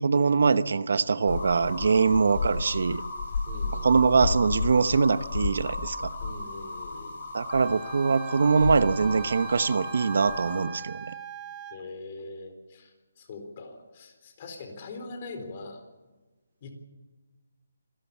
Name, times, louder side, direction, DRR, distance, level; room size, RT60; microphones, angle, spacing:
voice 1, 0.0-3.0 3.8-6.1 7.3-11.0, right 5 dB, 65° right, 13 dB, 0.9 m, -23 dB
sound 1, 1.3-10.6, left 3 dB, 50° left, 4.4 m, -33 dB
voice 2, 3.5-4.0 6.2-7.2 11.7-15.8 16.6-16.7, left 3 dB, 35° left, 6 dB, 4.2 m, -42 dB
Wind instrument woodwind instrument, 7.5-11.8, right 9 dB, 15° right, 1.5 m, -42 dB
26.5 x 13.0 x 8.5 m, 1.2 s
hypercardioid pair, 165°, 0 cm